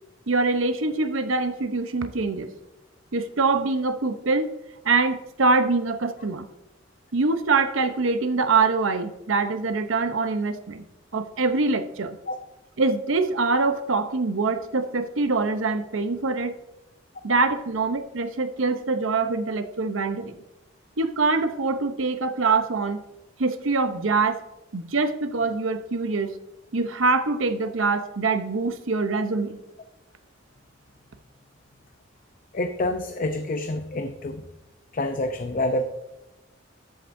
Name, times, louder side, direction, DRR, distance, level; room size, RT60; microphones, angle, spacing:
voice 1, 0.3-2.5 3.1-4.5 4.8-6.5 7.1-10.8 11.1-12.2 12.8-16.5 17.2-20.4 21.0-23.0 23.4-24.4 24.7-26.3 26.7-29.6, right 3 dB, 90° right, 0.8 m, -24 dB
voice 2, 32.5-34.4 34.9-35.8, left 1 dB, 45° left, 0.6 m, -27 dB
13.0 x 8.0 x 2.6 m
head